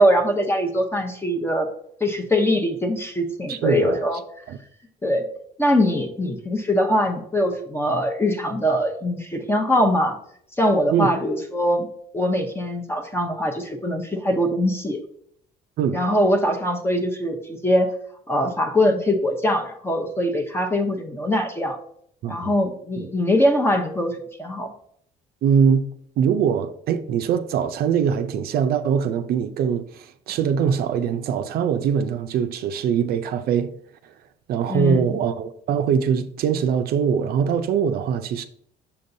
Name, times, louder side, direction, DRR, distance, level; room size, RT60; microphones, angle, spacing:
voice 1, 0.0-1.7 2.0-4.2 5.0-5.2 5.6-10.2 10.6-11.9 12.1-15.0 15.9-17.9 18.3-21.8 22.2-24.7 34.7-35.2, equal, 15° left, 0.8 m, -22 dB
voice 2, 3.5-4.0 4.5-4.6 10.9-11.1 15.8-16.0 22.2-22.5 23.0-23.1 25.4-25.9 26.2-33.7 34.5-38.5, right 7 dB, 65° right, 0.5 m, -22 dB
6.9 x 5.3 x 2.7 m
cardioid pair, 110°, 17 cm